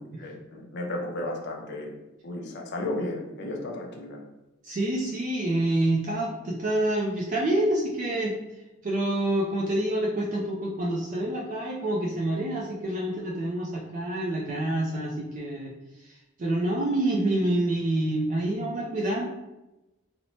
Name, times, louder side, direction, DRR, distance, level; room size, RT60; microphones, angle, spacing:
voice 1, 0.0-1.9 2.2-4.2, left 1 dB, 55° left, 1 dB, 0.4 m, -34 dB
voice 2, 4.6-8.3 8.8-15.7 16.0-16.1 16.4-19.3, right 1 dB, 40° right, -2 dB, 0.3 m, -27 dB
2.7 x 2.0 x 2.9 m, 0.99 s
head